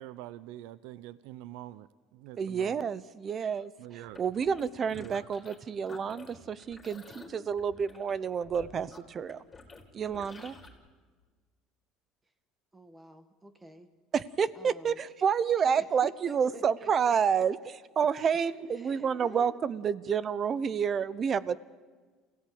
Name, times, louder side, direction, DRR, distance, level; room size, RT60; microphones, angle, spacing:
voice 1, 0.0-2.8 3.8-4.2 4.9-5.3, right 14 dB, 80° right, 16 dB, 0.7 m, -45 dB
voice 2, 2.4-3.7 4.2-9.4 9.9-10.5 14.1-17.6 18.0-21.6, right 7 dB, 30° right, 17 dB, 0.8 m, -29 dB
sound 1, 4.0-5.6 5.8-10.7, left 3 dB, 15° left, 4.2 m, -50 dB
voice 3, 12.7-13.9 14.5-15.0 15.7-17.4 18.6-19.6, right 1 dB, 10° right, 8 dB, 1.7 m, -50 dB
28.5 x 16.5 x 8.7 m, 1.4 s
cardioid pair, 140°, 0 cm